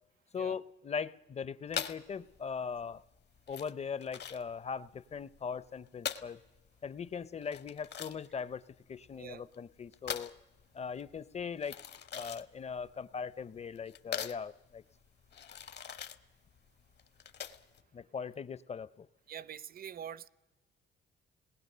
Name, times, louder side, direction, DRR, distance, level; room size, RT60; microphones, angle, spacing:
voice 1, 0.3-3.0 3.5-6.4 6.8-8.6 8.9-10.3 10.7-11.8 12.1-14.8 17.9-19.1, left 6 dB, 35° left, 0.6 m, -40 dB
sound 1, 1.7-17.8, left 8 dB, 60° left, 1.1 m, -43 dB
voice 2, 19.3-20.3, right 9 dB, 50° right, 0.7 m, -44 dB
26.5 x 19.5 x 6.7 m
cardioid pair, 90°, 20 cm